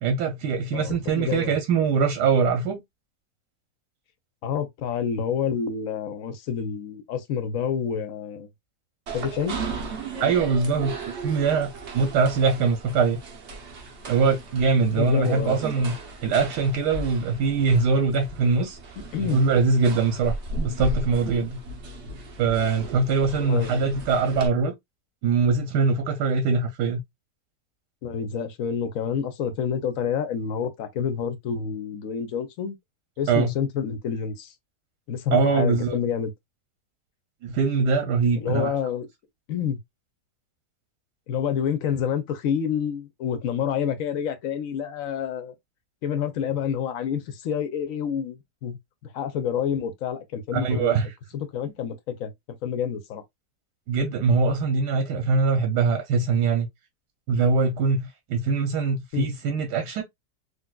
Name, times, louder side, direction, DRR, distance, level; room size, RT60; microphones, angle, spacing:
voice 1, 0.0-2.8 10.2-13.2 14.1-15.9 16.2-18.8 19.2-21.6 22.4-24.7 25.2-27.0 33.3-33.5 35.3-36.0 37.4-38.7 50.5-51.1 51.7-51.8 53.9-56.7 57.3-60.0, right 4 dB, 85° right, 1.3 m, -23 dB
voice 2, 0.7-1.5 4.4-8.5 9.1-9.6 14.9-15.9 19.1-19.4 23.4-23.9 28.0-32.8 33.2-34.5 35.1-36.3 38.4-39.1 39.5-39.8 41.3-45.5 46.0-48.8 49.0-51.0 51.3-52.3 52.6-53.2 59.1-59.3, left 7 dB, 65° left, 0.9 m, -28 dB
sound 1, 9.1-24.5, right 2 dB, 50° right, 1.0 m, -36 dB
3.8 x 2.6 x 2.2 m
omnidirectional pair, 1.8 m